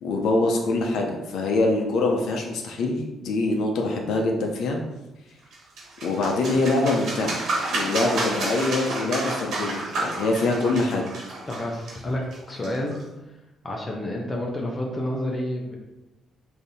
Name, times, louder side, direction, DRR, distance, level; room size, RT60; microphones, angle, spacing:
voice 1, 0.0-4.8 6.0-7.4 7.7-11.1, left 2 dB, 75° left, 1 dB, 0.6 m, -24 dB
sound 1, 5.5-13.0, right 2 dB, 70° right, 1.3 m, -31 dB
voice 2, 11.5-12.2 12.5-12.9 13.6-15.8, left 1 dB, 30° left, 0 dB, 0.7 m, -29 dB
3.4 x 2.7 x 4.1 m, 1.0 s
cardioid pair, 90°, 0 cm